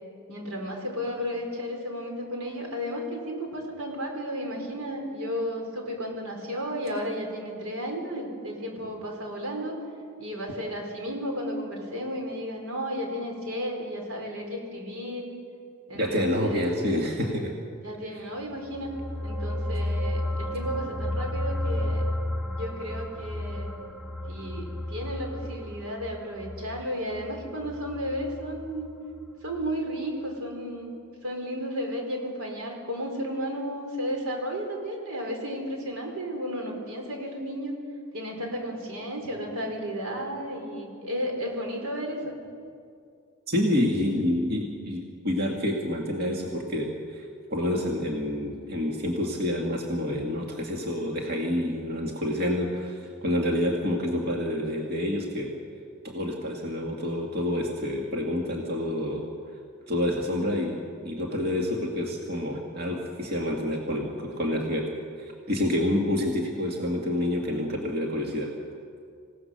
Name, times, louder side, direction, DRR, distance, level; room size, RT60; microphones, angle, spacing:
voice 1, 0.3-9.7 10.2-15.3 15.9-16.8 17.8-18.9 19.2-22.0 22.5-23.7 24.3-28.9 29.4-31.0 31.2-37.7 38.1-42.4, equal, 85° right, 1 dB, 4.8 m, -33 dB
voice 2, 15.9-17.5 43.5-55.5 56.0-59.2 59.9-60.8 61.0-64.9 65.2-68.5, left 1 dB, 50° right, 0 dB, 2.0 m, -28 dB
sound 1, 18.5-29.3 29.6-29.7, left 1 dB, 5° right, 1.1 m, -32 dB
26.0 x 17.5 x 6.7 m, 2.3 s
head